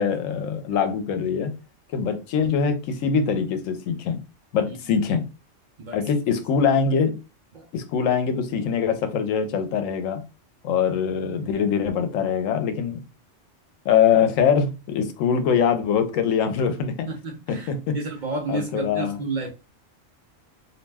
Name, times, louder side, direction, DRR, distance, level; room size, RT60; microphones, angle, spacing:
voice 1, 0.0-1.5 1.9-4.2 4.5-5.2 5.9-7.2 7.7-10.2 10.6-13.0 13.8-17.1 17.5-18.0 18.5-19.2, left 7 dB, 85° left, 1.0 m, -23 dB
voice 2, 17.1-17.7 17.9-19.5, right 3 dB, 55° right, 0.5 m, -31 dB
2.5 x 2.1 x 3.3 m
omnidirectional pair, 1.3 m